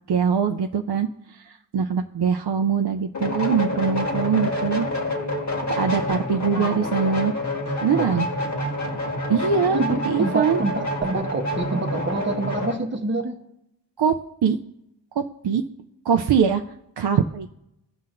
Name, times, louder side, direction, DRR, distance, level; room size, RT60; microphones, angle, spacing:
voice 1, 0.1-4.9 5.8-7.3 7.8-8.3 9.3-9.8 10.1-10.6 14.0-14.2 14.4-14.6 15.2-15.6 16.1-16.6 17.0-17.5, right 6 dB, 60° right, 5 dB, 0.5 m, -22 dB
sound 1, 3.1-12.8, left 1 dB, 40° left, 1.6 m, -28 dB
voice 2, 7.7-8.2 9.7-13.4, right 2 dB, 25° right, 3 dB, 0.9 m, -27 dB
16.0 x 5.7 x 2.5 m, 0.84 s
wide cardioid pair, 60°, 45 cm